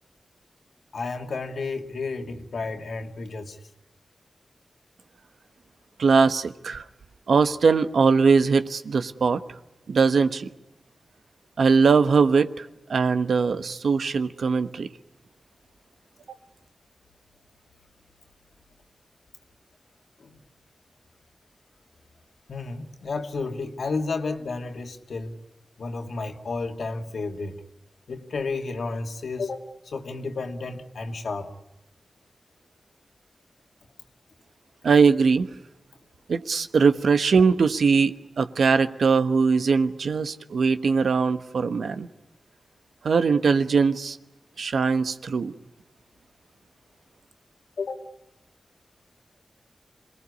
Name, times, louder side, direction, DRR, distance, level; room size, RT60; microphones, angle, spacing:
voice 1, 0.9-3.6 20.2-20.4 22.5-25.4 25.8-27.6 28.1-29.6 29.9-31.5 47.8-48.0, left 3 dB, 80° left, 2.3 m, -32 dB
voice 2, 6.0-6.8 7.3-9.4 9.9-10.5 11.6-14.9 34.8-35.5 36.3-42.1 43.0-44.2 44.6-45.5, right 5 dB, 85° right, 1.1 m, -21 dB
27.0 x 19.5 x 9.6 m
cardioid pair, 60°, 0 cm